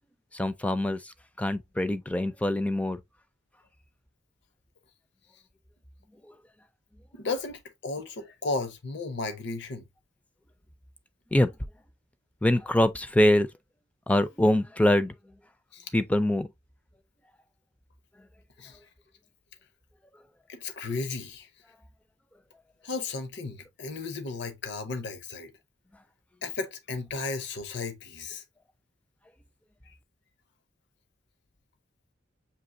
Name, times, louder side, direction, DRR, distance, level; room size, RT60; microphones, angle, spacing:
voice 1, 0.3-3.0 11.3-11.5 12.4-13.5 14.1-15.1 15.9-16.5, left 1 dB, 5° left, 0.4 m, -24 dB
voice 2, 7.1-9.8 15.7-15.9 18.6-18.8 20.5-21.5 22.8-25.5 26.4-28.4 29.9-30.0, left 3 dB, 65° left, 0.7 m, -34 dB
6.9 x 2.8 x 2.6 m
head